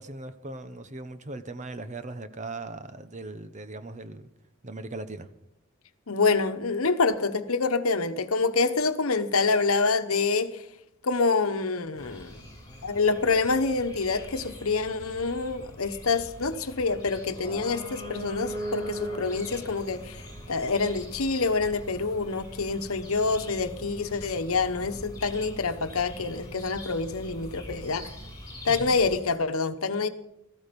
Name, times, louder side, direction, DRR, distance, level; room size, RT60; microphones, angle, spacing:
voice 1, 0.0-4.3 4.6-5.3 28.7-29.0, right 2 dB, 35° right, 1.0 m, -39 dB
voice 2, 6.1-10.6 11.0-12.4 12.8-20.2 20.5-28.1 28.6-30.1, left 4 dB, 80° left, 1.1 m, -26 dB
sound 1, 12.0-29.2, equal, 20° left, 7.8 m, -41 dB
17.5 x 14.0 x 5.3 m
head